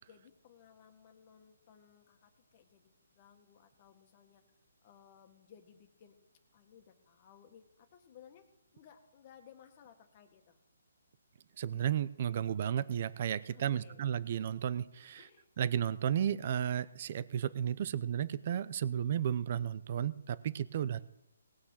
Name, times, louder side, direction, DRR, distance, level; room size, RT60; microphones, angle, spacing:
voice 1, 0.1-2.9 3.1-4.4 4.8-6.2 6.5-8.5 8.7-10.6 13.5-14.0 15.2-15.5 20.8-21.0, left 8 dB, 35° left, 6 dB, 1.8 m, -60 dB
voice 2, 11.6-15.3 15.6-21.0, right 9 dB, 45° right, 18 dB, 0.6 m, -33 dB
18.5 x 6.3 x 7.4 m, 0.86 s
hypercardioid pair, 160°, 0 cm